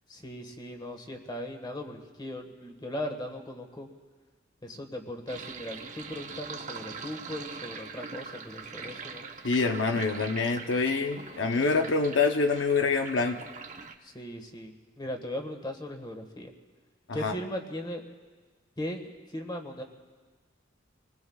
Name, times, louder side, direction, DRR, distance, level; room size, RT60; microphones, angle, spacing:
voice 1, 0.1-3.9 4.6-9.2 14.0-16.5 17.1-18.0 18.8-19.8, left 1 dB, 25° left, 4 dB, 1.6 m, -38 dB
Sink (filling or washing), 5.3-13.9, right 5 dB, 40° right, 1.0 m, -42 dB
voice 2, 9.4-13.4 17.1-17.3, left 4 dB, 80° left, 5 dB, 0.8 m, -26 dB
28.5 x 20.5 x 2.4 m, 1.4 s
head